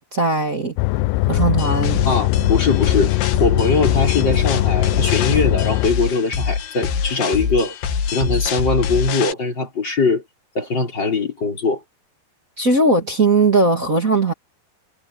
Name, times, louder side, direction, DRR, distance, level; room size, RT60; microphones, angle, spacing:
voice 1, 0.1-0.7 1.2-2.0 12.6-14.3, right 3 dB, 30° right, 1.7 m, -18 dB
sound 1, 0.8-5.9, left 20 dB, 85° left, 2.3 m, -20 dB
sound 2, 1.3-9.3, left 6 dB, 70° left, 3.9 m, -24 dB
voice 2, 2.1-3.1 3.4-7.8 8.1-10.2 10.6-11.8, left 3 dB, 25° left, 5.6 m, -21 dB
omnidirectional pair, 5.2 m